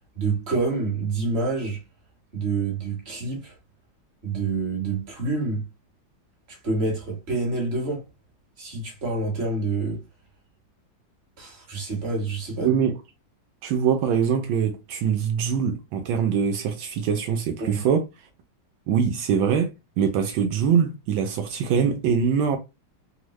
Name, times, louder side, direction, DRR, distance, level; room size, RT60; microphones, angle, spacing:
voice 1, 0.1-1.8 2.3-3.6 4.2-5.7 6.5-8.1 8.6-10.0 11.4-12.7 17.6-17.8, right 3 dB, 35° right, 1.4 m, -27 dB
voice 2, 12.6-13.0 13.6-18.0 18.9-22.6, right 7 dB, 80° right, 1.4 m, -23 dB
3.7 x 2.1 x 3.0 m
omnidirectional pair, 2.2 m